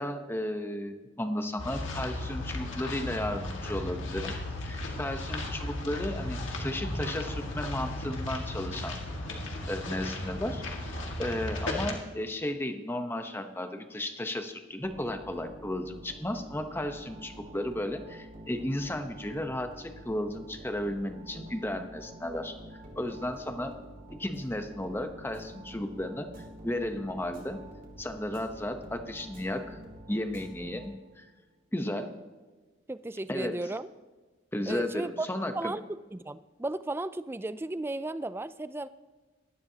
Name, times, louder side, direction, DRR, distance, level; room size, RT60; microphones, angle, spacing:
voice 1, 0.0-4.3 4.6-9.0 9.7-23.7 24.2-27.6 28.0-29.8 30.1-31.3 31.7-32.1 33.3-33.7 34.5-35.7, left 1 dB, 10° left, 7 dB, 0.8 m, -34 dB
sound 1, 1.6-11.9, left 1 dB, 75° left, 1.9 m, -35 dB
sound 2, 14.8-31.3, right 1 dB, 45° right, 2.6 m, -48 dB
voice 2, 32.9-33.9 34.7-35.3 35.5-35.8 36.1-38.9, right 2 dB, 10° right, 14 dB, 0.3 m, -34 dB
19.5 x 12.5 x 2.8 m, 1.3 s
head